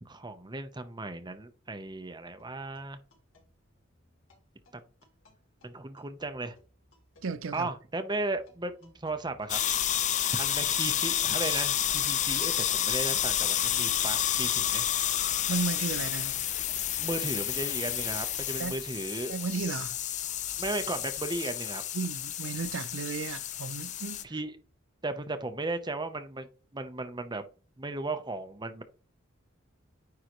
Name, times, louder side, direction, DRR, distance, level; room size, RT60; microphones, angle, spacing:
voice 1, 0.0-3.0 5.6-6.6 7.5-9.6 10.3-14.9 17.0-19.3 20.6-21.8 24.2-24.5 25.0-26.5 26.7-27.4 27.8-28.8, right 2 dB, 20° right, 0.8 m, -35 dB
sound 1, 2.3-21.4, equal, 75° left, 2.7 m, -60 dB
voice 2, 7.2-7.7 15.5-16.4 18.6-18.8 19.3-20.0 21.9-24.2, right 4 dB, 75° right, 0.6 m, -34 dB
sound 2, 9.5-24.2, left 11 dB, 40° left, 0.4 m, -30 dB
9.6 x 3.7 x 3.1 m
head